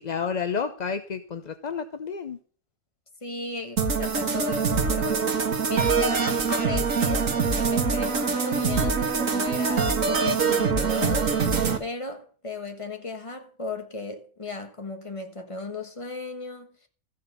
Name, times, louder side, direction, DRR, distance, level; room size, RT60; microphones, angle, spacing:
voice 1, 0.0-2.4, left 6 dB, 45° left, 0.6 m, -30 dB
voice 2, 3.2-5.4 5.7-11.4 11.8-16.7, left 3 dB, 25° left, 1.4 m, -35 dB
sound 1, 3.8-11.8, right 5 dB, 70° right, 1.7 m, -24 dB
14.0 x 6.5 x 6.8 m
omnidirectional pair, 1.4 m